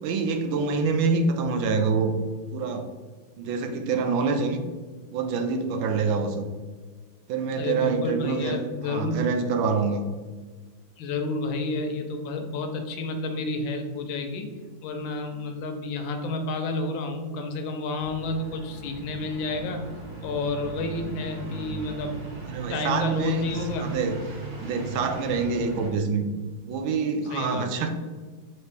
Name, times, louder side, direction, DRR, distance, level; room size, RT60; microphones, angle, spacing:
voice 1, 0.0-2.1 2.5-2.9 3.4-4.6 5.1-6.4 7.3-8.6 8.9-10.0 22.5-23.4 23.8-24.2 24.6-26.3 26.6-27.9, right 4 dB, 80° right, 5 dB, 1.4 m, -26 dB
voice 2, 7.6-9.2 11.0-14.5 14.8-19.9 20.2-22.3 22.7-23.9 27.3-27.7, left 2 dB, 80° left, 6 dB, 1.3 m, -30 dB
sound 1, 18.0-25.9, right 3 dB, 60° right, 1.3 m, -38 dB
4.5 x 3.0 x 3.3 m, 1.4 s
omnidirectional pair, 2.2 m